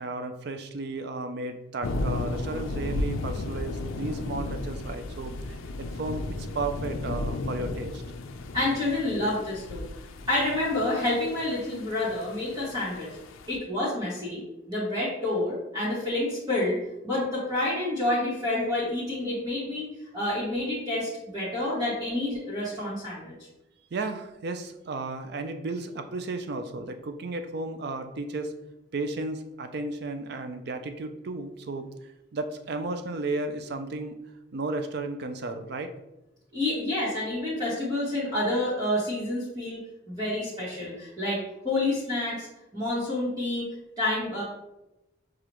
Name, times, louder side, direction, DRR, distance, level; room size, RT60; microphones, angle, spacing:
voice 1, 0.0-8.0 23.9-28.5 28.9-31.9 32.3-34.2 34.5-35.9, right 2 dB, 55° right, 8 dB, 0.4 m, -34 dB
sound 1, 1.8-13.6, left 2 dB, 80° left, 0.4 m, -34 dB
voice 2, 8.5-9.8 10.3-13.1 13.5-16.8 17.0-19.9 20.1-23.3 36.5-39.8 40.1-41.4 41.6-42.5 42.7-43.7 44.0-44.4, left 1 dB, 20° right, -9 dB, 1.2 m, -28 dB
6.7 x 2.4 x 3.0 m, 0.97 s
head